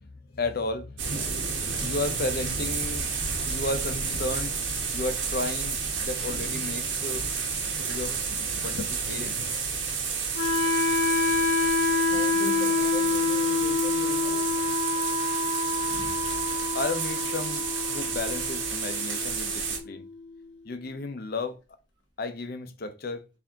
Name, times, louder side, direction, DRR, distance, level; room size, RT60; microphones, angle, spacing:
voice 1, 0.1-1.2 1.5-4.6 4.9-7.2 7.9-9.4 16.7-20.1 20.6-21.6 22.2-23.2, left 3 dB, 55° left, 0.6 m, -33 dB
sound 1, 1.0-19.8, right 5 dB, 85° right, 1.1 m, -30 dB
Wind instrument woodwind instrument, 10.3-20.3, left 3 dB, 90° left, 0.9 m, -27 dB
voice 2, 12.0-14.5 15.9-16.3, right 2 dB, 25° right, 1.2 m, -40 dB
4.5 x 2.7 x 3.6 m
head